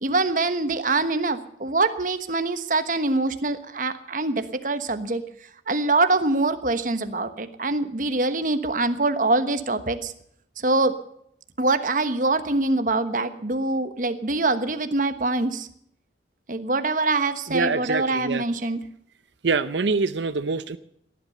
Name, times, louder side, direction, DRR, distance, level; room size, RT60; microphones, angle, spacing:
voice 1, 0.0-5.2 5.7-10.1 10.6-11.0 11.6-15.7 16.5-18.8, right 2 dB, 50° right, 10 dB, 1.2 m, -24 dB
voice 2, 17.5-18.4 19.4-20.8, right 4 dB, 90° right, 12 dB, 0.7 m, -25 dB
18.0 x 11.5 x 6.7 m, 0.69 s
head